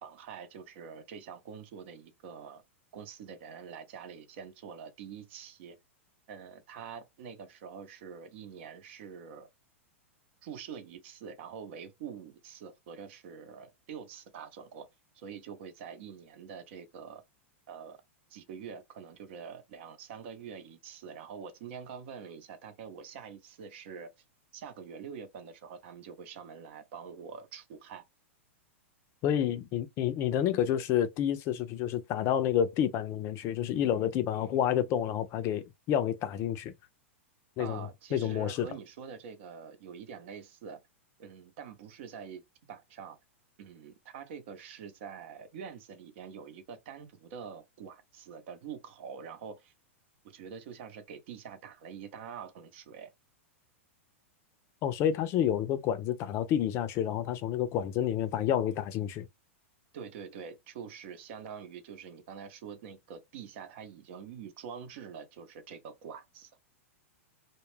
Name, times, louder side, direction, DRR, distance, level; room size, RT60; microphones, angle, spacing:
voice 1, 0.0-2.6 2.9-5.8 6.3-9.5 10.4-14.9 15.1-17.2 17.7-18.0 18.3-24.1 24.5-28.0 37.6-40.8 41.2-42.4 42.7-43.2 43.6-49.7 50.2-53.1 59.9-66.5, right 7 dB, 60° right, 0.7 m, -45 dB
voice 2, 29.2-36.7 37.6-38.7 54.8-59.3, left 10 dB, 40° left, 0.4 m, -29 dB
2.2 x 2.1 x 3.2 m
hypercardioid pair, 120°, 7 cm